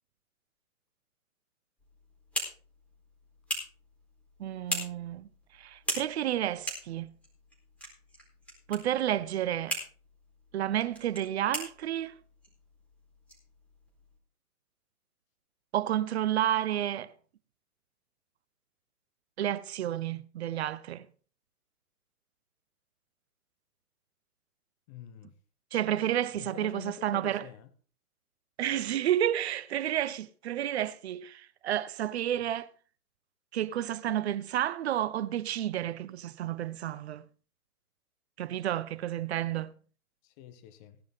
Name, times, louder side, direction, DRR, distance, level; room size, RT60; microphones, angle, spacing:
sound 1, 1.8-14.2, right 1 dB, 5° left, 4.1 m, -41 dB
voice 1, 4.4-7.1 8.7-9.8 10.5-12.2 15.7-17.1 19.4-21.0 25.7-27.5 28.6-32.7 33.5-37.2 38.4-39.7, right 11 dB, 45° right, 0.8 m, -31 dB
voice 2, 24.9-25.3 26.3-27.7 40.2-41.0, left 11 dB, 25° left, 1.1 m, -47 dB
17.0 x 10.5 x 3.7 m
hypercardioid pair, 135°, 46 cm